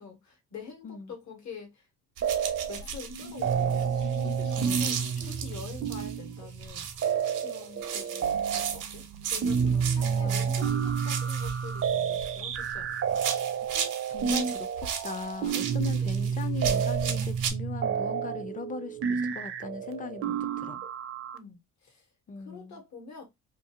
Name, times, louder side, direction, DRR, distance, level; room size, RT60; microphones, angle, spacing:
voice 1, 0.0-1.9 2.7-9.0 9.3-13.2 21.3-22.1 22.4-23.2, left 5 dB, 65° left, 1.3 m, -46 dB
sound 1, 2.2-2.8 3.1-21.4, right 7 dB, 45° right, 0.4 m, -30 dB
sound 2, 2.2-6.2 6.6-12.7 13.1-17.5, right 8 dB, 90° right, 0.7 m, -36 dB
sound 3, 2.8-5.9, left 6 dB, 90° left, 1.0 m, -46 dB
voice 2, 10.0-10.6 13.7-20.8 22.3-22.8, left 5 dB, 25° left, 0.4 m, -40 dB
2.6 x 2.4 x 2.7 m
cardioid pair, 90°, 30 cm